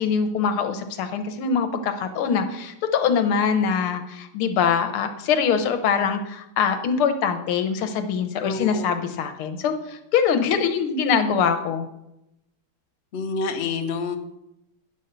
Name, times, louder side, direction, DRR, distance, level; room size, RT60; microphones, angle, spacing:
voice 1, 0.0-9.7 10.1-11.9, left 6 dB, 80° left, 8 dB, 1.7 m, -23 dB
voice 2, 8.4-8.9 13.1-14.2, left 4 dB, 50° left, 5 dB, 0.8 m, -28 dB
9.8 x 5.4 x 6.7 m, 0.86 s
omnidirectional pair, 2.4 m